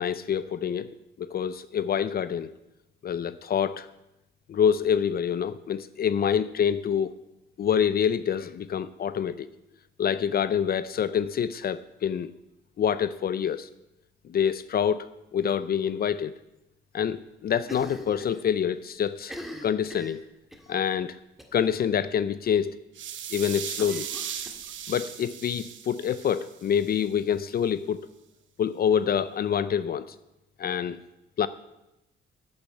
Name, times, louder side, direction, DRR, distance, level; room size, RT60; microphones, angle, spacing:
voice 1, 0.0-2.5 3.0-3.9 4.5-7.1 7.6-9.5 10.0-12.3 12.8-13.7 14.3-16.3 16.9-19.3 19.6-20.2 20.7-21.2 21.5-22.8 23.3-24.1 24.9-28.0 28.6-30.1 30.6-31.0 31.4-31.5, left 8 dB, 50° left, 15 dB, 0.5 m, -26 dB
Cough, 17.6-18.4 18.7-18.8 19.2-20.7 21.4-21.7 22.0-22.1 22.4-22.5 23.8-25.0, equal, ahead, 1.8 m, -43 dB
sound 1, 22.9-27.0, right 9 dB, 70° right, 1.1 m, -38 dB
8.6 x 8.2 x 9.0 m, 0.92 s
cardioid pair, 90°, 20 cm